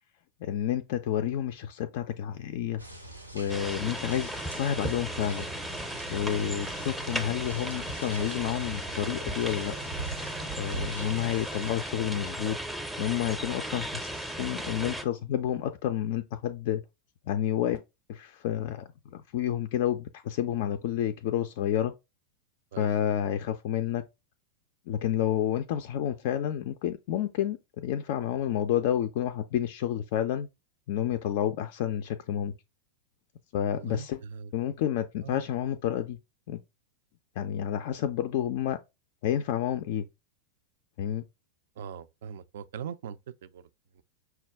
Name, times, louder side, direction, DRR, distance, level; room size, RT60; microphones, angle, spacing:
voice 1, 0.4-2.8 3.3-5.5 6.1-9.7 10.6-12.6 13.0-16.8 17.3-17.8 18.1-18.9 19.3-21.9 22.8-24.0 24.9-30.5 30.9-32.5 33.5-34.2 34.5-36.2 36.5-36.6 37.4-38.8 39.2-40.1 41.0-41.2, left 10 dB, 50° left, 0.3 m, -30 dB
sound 1, 2.8-11.7, right 3 dB, 90° right, 0.7 m, -43 dB
sound 2, 3.5-15.0, right 1 dB, ahead, 0.5 m, -36 dB
voice 2, 33.7-34.8 35.2-35.4 41.8-43.7 43.9-44.0, right 7 dB, 60° right, 0.3 m, -41 dB
5.7 x 2.2 x 3.3 m
figure-of-eight pair, 90°, 0 cm